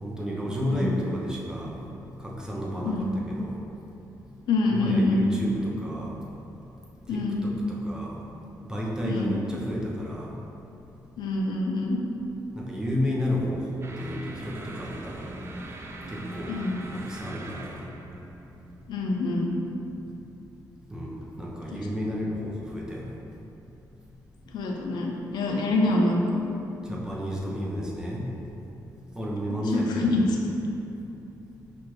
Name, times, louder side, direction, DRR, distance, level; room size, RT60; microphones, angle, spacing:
voice 1, 0.0-1.7 2.2-3.6 4.7-6.1 7.1-8.2 8.6-10.3 12.5-15.3 16.1-16.6 16.9-17.8 20.9-23.1 26.9-28.3 29.1-30.3, equal, 10° right, -4 dB, 0.7 m, -31 dB
voice 2, 0.6-1.0 2.8-3.2 4.5-5.2 7.1-7.5 9.0-9.4 11.2-12.0 16.5-16.8 18.9-19.5 21.7-21.9 24.5-26.4 29.7-30.4, left 2 dB, 80° left, 0 dB, 0.5 m, -26 dB
sound 1, 13.8-20.3, right 2 dB, 35° right, 0.4 m, -41 dB
5.8 x 2.5 x 3.1 m, 2.9 s
cardioid pair, 100°, 7 cm